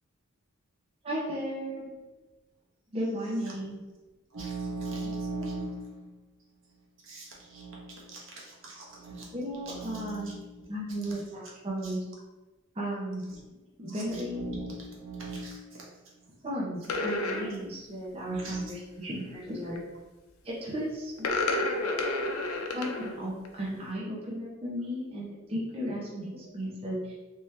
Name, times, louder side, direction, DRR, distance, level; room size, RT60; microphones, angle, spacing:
voice 1, 1.0-1.9 2.9-3.8 9.3-10.3 10.7-12.0 12.7-13.3 13.8-14.6 16.4-19.8 20.4-21.3 22.7-27.1, equal, 25° right, -6 dB, 0.7 m, -35 dB
voice 2, 4.3-11.2 11.8-12.0 13.2-13.4 13.9-16.5 16.8-17.0 18.2-18.6 26.3-26.4, right 2 dB, 65° right, -3 dB, 1.0 m, -40 dB
sound 1, 16.8-17.5 19.5-19.8 21.2-23.1 23.4-23.7, left 2 dB, 85° left, 0.5 m, -30 dB
3.5 x 2.8 x 3.2 m, 1.2 s
head